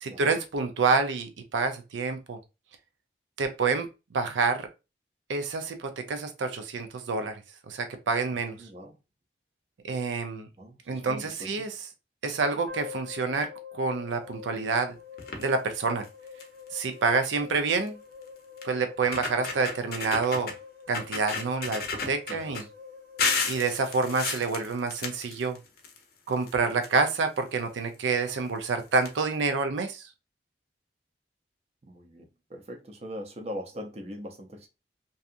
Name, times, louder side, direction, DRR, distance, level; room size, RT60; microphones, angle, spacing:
voice 1, 0.0-2.4 3.4-3.9 4.1-4.7 5.3-7.3 7.7-8.6 9.9-10.5 10.9-11.7 12.2-14.9 15.4-16.0 16.7-18.0 18.6-20.5 20.9-22.6 23.5-25.6 26.3-30.0, right 4 dB, 90° right, 0.4 m, -28 dB
voice 2, 8.6-9.0 10.6-11.6 22.3-22.7 31.8-34.7, equal, 35° right, 0.5 m, -41 dB
sound 1, 12.7-24.9, left 7 dB, 50° right, 0.9 m, -46 dB
sound 2, 15.2-15.5 16.0-16.1 16.4-16.7 17.9-18.0 18.6-18.7 19.0-20.6 20.9-22.6 23.2-26.0 26.3-27.4 28.3-28.4 28.7-28.8 29.0-29.1, left 4 dB, 55° left, 0.5 m, -32 dB
2.7 x 2.3 x 2.4 m
head